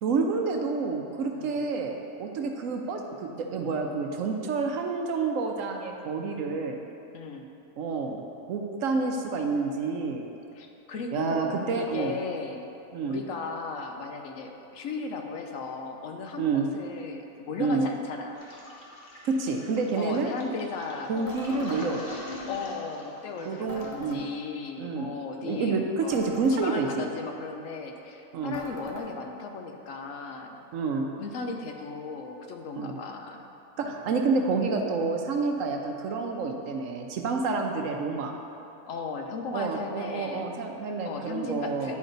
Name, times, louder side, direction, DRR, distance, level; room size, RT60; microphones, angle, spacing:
voice 1, 0.0-6.8 7.8-8.2 8.5-10.3 11.1-12.1 12.9-13.2 16.4-16.7 17.6-17.9 19.2-20.3 21.1-22.1 23.4-24.2 24.8-25.1 25.4-27.1 28.3-28.6 30.7-31.1 32.8-33.0 33.8-38.3 39.5-42.0, right 4 dB, 70° right, 3 dB, 1.0 m, -28 dB
voice 2, 1.3-1.6 7.1-7.5 10.5-12.7 13.0-18.5 19.9-21.4 22.5-26.2 26.5-30.6 31.2-33.5 33.8-34.0 38.9-40.5 41.0-42.0, left 4 dB, 65° left, 3 dB, 1.0 m, -36 dB
Toilet flush, 18.3-24.1, left 2 dB, 40° left, 1.0 m, -43 dB
sound 1, 21.3-21.8 23.7-24.2 26.1-26.7 28.5-29.1, left 1 dB, 15° left, 0.7 m, -42 dB
10.0 x 5.3 x 3.9 m, 2.7 s
omnidirectional pair, 1.5 m